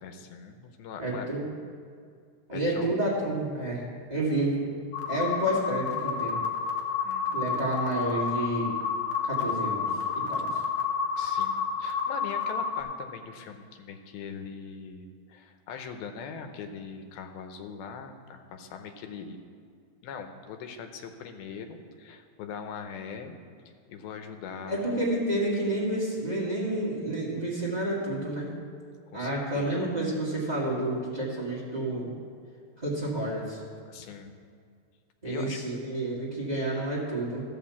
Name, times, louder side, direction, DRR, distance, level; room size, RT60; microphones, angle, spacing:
voice 1, 0.0-1.3 2.5-2.9 7.0-7.5 11.2-19.4 20.0-23.4 23.9-24.9 29.1-29.9 33.9-34.4 35.2-35.6, left 6 dB, 90° left, 6 dB, 2.7 m, -41 dB
voice 2, 1.0-1.5 2.5-3.8 4.1-4.7 5.1-6.4 7.3-8.7 9.2-9.9 10.1-10.5 24.7-28.5 29.1-32.1 32.8-33.6 35.2-37.4, right 1 dB, 30° right, -7 dB, 0.7 m, -29 dB
sound 1, 4.9-12.8, left 6 dB, 65° left, 1.8 m, -30 dB
13.5 x 5.6 x 7.0 m, 2.2 s
omnidirectional pair, 4.2 m